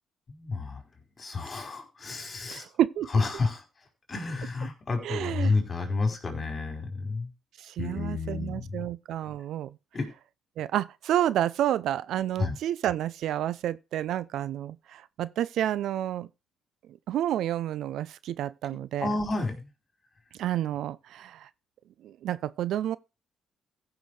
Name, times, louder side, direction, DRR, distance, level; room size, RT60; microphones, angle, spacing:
voice 1, 0.3-0.8 1.2-2.7 3.1-3.6 4.1-7.3 7.8-8.9 9.9-10.1 12.4-12.5 19.0-19.7, left 3 dB, 35° left, 5.0 m, -30 dB
voice 2, 2.5-3.1 5.0-5.5 7.6-9.8 10.6-16.3 17.1-19.1 20.4-21.5 22.0-23.0, right 11 dB, 80° right, 0.6 m, -30 dB
15.0 x 6.2 x 4.8 m
cardioid pair, 90°, 0 cm